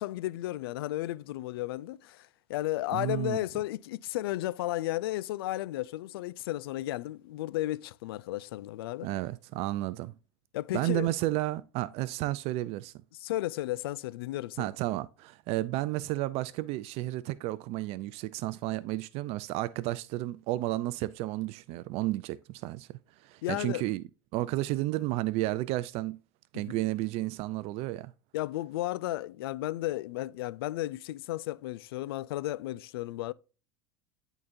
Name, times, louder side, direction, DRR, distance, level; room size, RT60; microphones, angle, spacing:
voice 1, 0.0-9.1 10.5-11.1 13.2-14.7 23.4-23.8 26.5-26.8 28.3-33.3, left 16 dB, 75° left, 0.4 m, -34 dB
voice 2, 2.9-3.4 9.0-10.1 10.7-12.9 14.6-22.9 23.2-24.0 24.3-26.2 26.5-28.1, right 17 dB, 55° right, 0.5 m, -32 dB
10.5 x 4.0 x 2.6 m
hypercardioid pair, 85°, 13 cm